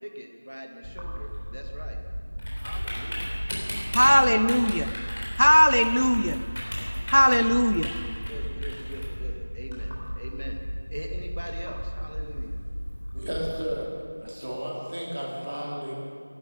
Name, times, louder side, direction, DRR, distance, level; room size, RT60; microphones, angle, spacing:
voice 1, 0.0-2.0 2.6-3.3 4.3-4.7 7.3-7.5 8.3-10.6 10.9-12.6, equal, 80° right, 2 dB, 2.0 m, -41 dB
Typing, 0.8-13.5, equal, 40° left, 3.5 m, -33 dB
voice 2, 3.9-4.9 5.4-6.4 7.1-7.9, equal, 80° left, 11 dB, 0.7 m, -19 dB
voice 3, 13.1-13.9 14.2-16.0, equal, 35° right, -3 dB, 2.6 m, -33 dB
11.5 x 10.5 x 9.8 m, 2.3 s
figure-of-eight pair, 180°, 0 cm